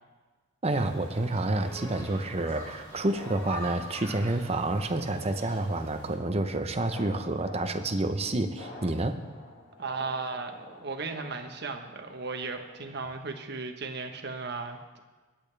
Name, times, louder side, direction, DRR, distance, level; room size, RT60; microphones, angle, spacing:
voice 1, 0.6-9.2, right 2 dB, 30° right, 7 dB, 0.8 m, -29 dB
sound 1, 0.7-6.1, equal, 15° left, 4.0 m, -44 dB
sound 2, 1.0-12.8, left 2 dB, 90° left, 4.8 m, -49 dB
voice 2, 9.8-15.0, right 4 dB, 55° right, 5 dB, 1.2 m, -36 dB
20.5 x 8.7 x 3.4 m, 1.3 s
head